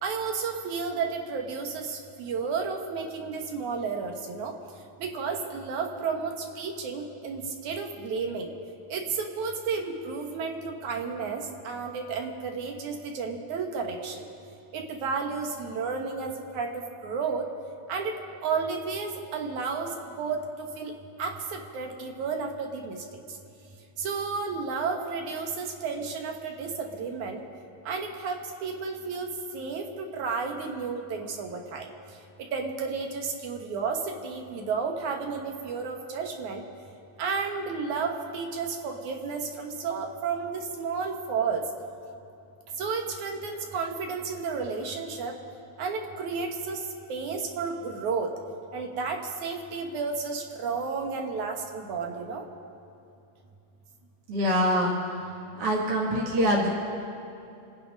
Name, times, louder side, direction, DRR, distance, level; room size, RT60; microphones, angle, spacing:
voice 1, 0.0-4.5 5.0-8.5 8.9-14.2 14.7-17.5 17.9-18.1 18.4-20.9 21.2-23.0 24.0-27.4 27.9-31.9 32.5-36.6 37.2-41.6 42.8-45.3 45.8-46.8 47.1-48.3 48.7-52.4, right 5 dB, 75° right, 3 dB, 2.7 m, -32 dB
voice 2, 54.3-54.9 55.6-56.7, equal, 55° right, -3 dB, 2.5 m, -24 dB
27.0 x 9.8 x 5.2 m, 2.7 s
omnidirectional pair, 3.5 m